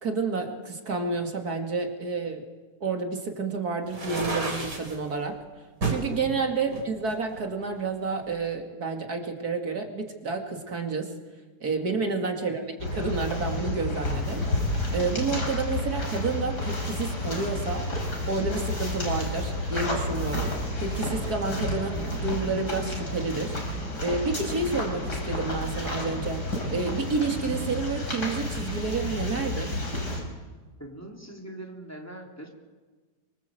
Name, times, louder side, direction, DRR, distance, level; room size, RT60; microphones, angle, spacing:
voice 1, 0.0-2.4 2.8-5.4 5.8-11.1 11.6-14.5 14.9-17.8 18.3-20.5 20.8-26.4 26.7-29.8, right 4 dB, 65° right, 3 dB, 2.9 m, -30 dB
sound 1, 3.9-5.0 5.8-6.1 6.7-7.8, right 3 dB, 80° right, 4.7 m, -31 dB
sound 2, 12.8-30.2, left 1 dB, 75° left, 5.9 m, -31 dB
voice 2, 30.8-32.5, right 1 dB, 10° left, 0 dB, 3.5 m, -42 dB
25.0 x 24.5 x 7.9 m, 1.3 s
omnidirectional pair, 1.7 m